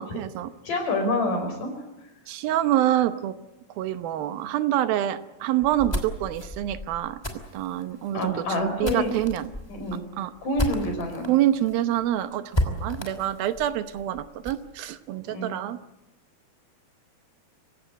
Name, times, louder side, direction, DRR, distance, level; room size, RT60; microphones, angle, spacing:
voice 1, 0.0-0.5 2.3-3.3 3.8-7.2 7.5-9.5 10.2-10.3 11.3-15.8, right 12 dB, 80° right, 11 dB, 2.8 m, -26 dB
voice 2, 0.6-1.7 8.1-9.1 9.7-10.0 10.4-11.3 15.3-15.5, left 1 dB, 60° left, 5 dB, 6.4 m, -27 dB
sound 1, 5.6-11.3 11.7-11.8 12.0-12.1 12.5-14.7, left 1 dB, 10° left, 2.3 m, -32 dB
27.0 x 16.5 x 9.1 m, 0.99 s
omnidirectional pair, 4.2 m